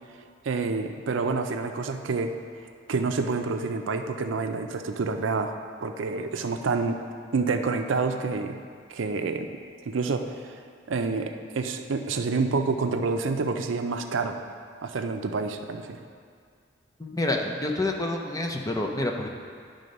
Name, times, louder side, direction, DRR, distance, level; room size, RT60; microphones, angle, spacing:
voice 1, 0.4-2.4 2.9-7.0 7.3-8.6 8.9-9.5 9.8-10.2 10.9-14.4 14.8-16.0, right 4 dB, 80° right, 6 dB, 0.5 m, -28 dB
voice 2, 17.0-19.3, left 2 dB, 20° left, 1 dB, 0.6 m, -28 dB
11.0 x 3.8 x 5.2 m, 2.1 s
head